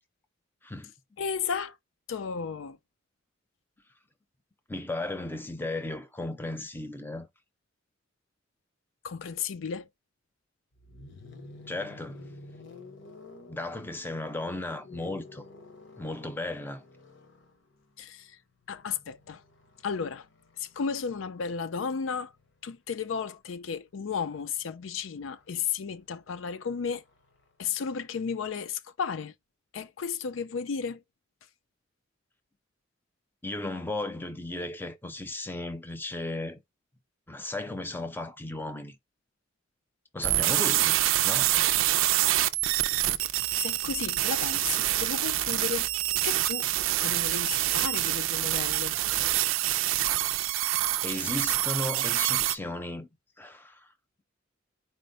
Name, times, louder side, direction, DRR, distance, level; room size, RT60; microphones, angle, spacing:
voice 1, 1.2-1.8 2.1-2.8 9.0-9.9 18.0-18.4 18.7-19.4 19.8-20.3 20.6-22.3 22.6-27.0 27.6-29.3 29.7-31.0 43.6-45.9 46.2-46.7 47.0-49.0, left 6 dB, 85° left, 0.4 m, -33 dB
voice 2, 4.7-7.3 11.7-12.3 13.5-15.4 16.0-16.8 33.4-36.6 37.3-39.0 40.1-41.6 51.0-53.1 53.4-53.8, left 2 dB, 10° left, 0.6 m, -35 dB
sound 1, 10.7-22.7 24.0-27.6, left 3 dB, 65° left, 0.9 m, -52 dB
sound 2, 40.2-52.6, right 14 dB, 85° right, 0.4 m, -26 dB
sound 3, 42.9-49.4, right 1 dB, 45° right, 0.6 m, -51 dB
4.4 x 2.0 x 3.8 m
head